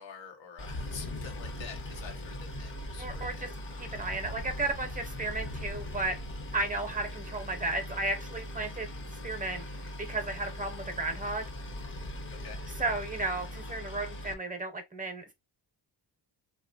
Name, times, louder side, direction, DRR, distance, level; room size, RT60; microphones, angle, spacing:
voice 1, 0.0-3.6 12.3-12.6, left 6 dB, 90° left, 1.1 m, -47 dB
sound 1, 0.6-13.8, left 1 dB, 60° left, 1.0 m, -45 dB
Boat Water vehicle, 0.6-14.3, equal, 30° left, 0.6 m, -42 dB
voice 2, 3.0-3.5 3.8-6.2 6.5-8.9 9.2-9.6 10.0-11.5 12.7-15.3, right 2 dB, 20° right, 0.6 m, -34 dB
3.0 x 2.2 x 2.5 m
wide cardioid pair, 135°, 43 cm